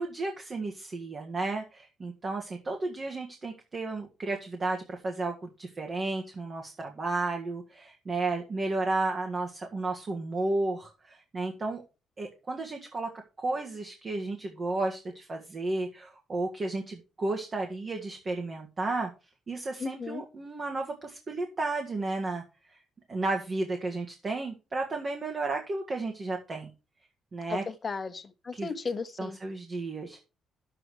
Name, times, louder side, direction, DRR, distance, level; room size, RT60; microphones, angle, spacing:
voice 1, 0.0-11.8 12.2-13.1 13.4-19.1 19.5-22.4 23.1-26.7 27.3-27.6 28.5-28.7 29.2-30.2, right 2 dB, 35° right, 1.7 m, -33 dB
voice 2, 19.8-20.2 27.5-29.4, left 5 dB, 35° left, 1.3 m, -35 dB
9.7 x 7.8 x 4.8 m
cardioid pair, 90°, 0 cm